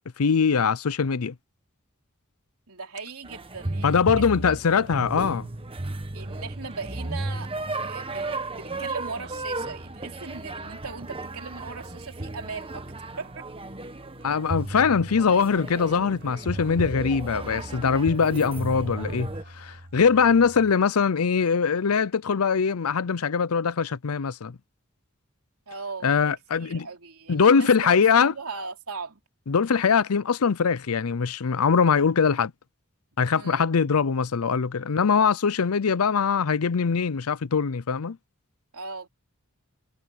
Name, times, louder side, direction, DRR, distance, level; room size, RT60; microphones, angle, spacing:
voice 1, 0.2-1.3 3.8-5.5 14.2-24.6 26.0-26.9 27.3-28.3 29.5-32.5 33.2-38.2, left 6 dB, 85° left, 0.6 m, -22 dB
voice 2, 2.7-4.6 6.1-12.8 13.2-13.4 25.7-29.2 33.3-33.6 38.7-39.1, right 4 dB, 85° right, 3.4 m, -39 dB
sound 1, 3.2-19.4, right 2 dB, 25° right, 1.3 m, -34 dB
sound 2, 4.7-20.7, equal, 50° right, 4.7 m, -49 dB
head